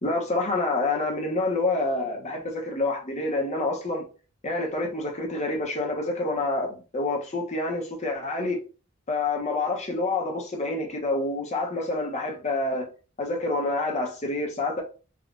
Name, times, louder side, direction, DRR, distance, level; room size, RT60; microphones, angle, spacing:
voice 1, 0.0-4.1 4.4-8.6 9.1-12.9 13.2-14.8, left 2 dB, 30° left, 0.7 m, -27 dB
3.6 x 2.3 x 2.4 m
head